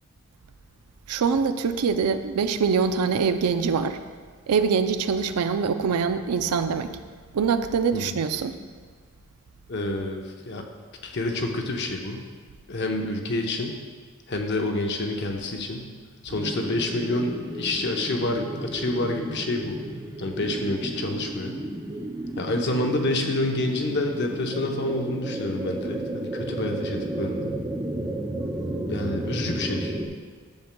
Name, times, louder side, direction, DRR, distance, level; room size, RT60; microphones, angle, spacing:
voice 1, 1.1-4.0 4.5-7.0 7.3-8.6, right 5 dB, 85° right, 10 dB, 0.4 m, -24 dB
voice 2, 9.7-10.6 11.0-12.2 12.7-13.8 14.3-15.9 16.2-19.9 20.2-21.6 22.4-27.6 28.9-30.0, left 2 dB, 50° left, 3 dB, 0.7 m, -28 dB
sound 1, 16.3-30.1, right 1 dB, 15° right, 0.5 m, -33 dB
10.5 x 6.9 x 2.2 m, 1.5 s
head